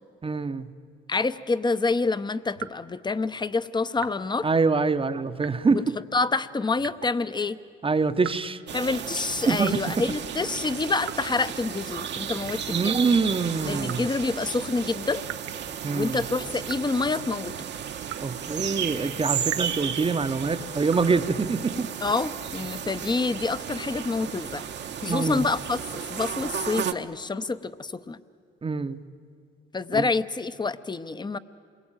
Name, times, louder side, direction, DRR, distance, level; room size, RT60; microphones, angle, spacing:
voice 1, 0.2-0.7 4.4-5.9 7.8-8.6 9.5-9.8 12.7-14.0 15.8-16.2 18.2-21.9 25.1-25.4 28.6-29.0 29.9-30.0, right 4 dB, 25° right, 11 dB, 0.9 m, -25 dB
voice 2, 1.1-4.5 5.7-7.6 8.7-12.9 13.7-15.2 15.9-17.5 22.0-24.7 25.0-28.2 29.7-31.4, left 3 dB, 20° left, 13 dB, 0.8 m, -27 dB
sound 1, 2.5-3.0 4.0-4.3 5.4-5.8 6.8-7.2 8.2-8.6 9.6-9.9 11.0-11.4 12.4-12.8 13.8-14.1 15.2-15.7 16.6-16.9 18.0-18.4 19.5-19.8 20.9-21.1, right 13 dB, 85° right, 0.8 m, -39 dB
sound 2, 8.7-26.9, right 8 dB, 65° right, 1.2 m, -34 dB
28.0 x 21.5 x 9.0 m, 2.3 s
cardioid pair, 90°, 20 cm